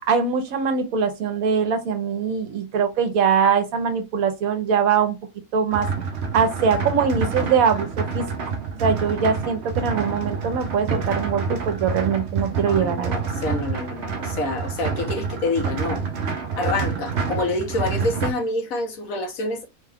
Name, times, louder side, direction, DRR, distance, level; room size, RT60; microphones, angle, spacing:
voice 1, 0.1-5.2 5.5-5.9 6.3-8.2 8.8-13.1, right 6 dB, 80° right, 1.2 m, -22 dB
sound 1, 5.7-18.3, right 5 dB, 60° right, 0.8 m, -28 dB
voice 2, 12.7-16.0 16.6-19.7, left 2 dB, 75° left, 1.3 m, -27 dB
3.5 x 2.3 x 3.4 m
omnidirectional pair, 1.5 m